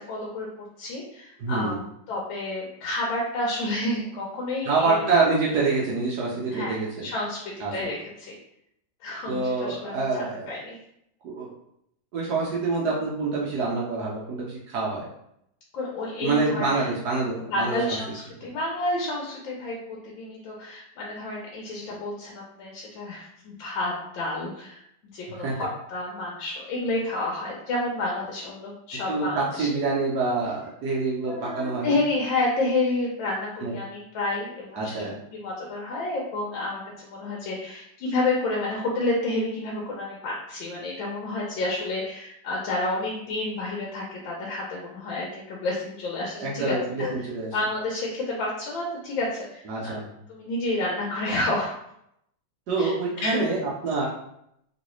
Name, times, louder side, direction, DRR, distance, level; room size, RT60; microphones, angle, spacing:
voice 1, 0.0-5.0 6.5-8.3 9.0-10.8 15.7-16.9 17.5-19.8 20.0-24.8 25.1-29.7 31.3-34.9 35.3-47.1 47.5-50.0 50.3-51.8 52.8-52.9 53.2-53.4, left 2 dB, 80° left, -3 dB, 1.4 m, -30 dB
voice 2, 1.4-1.8 4.6-7.1 7.6-7.7 9.3-10.6 11.2-11.5 12.1-15.1 16.2-18.0 25.4-25.6 29.1-32.0 33.6-33.7 34.7-35.1 46.4-47.5 49.7-50.1 52.7-53.6 53.8-54.1, right 3 dB, 70° right, -5 dB, 1.1 m, -26 dB
3.1 x 3.0 x 3.0 m, 0.76 s
omnidirectional pair, 2.1 m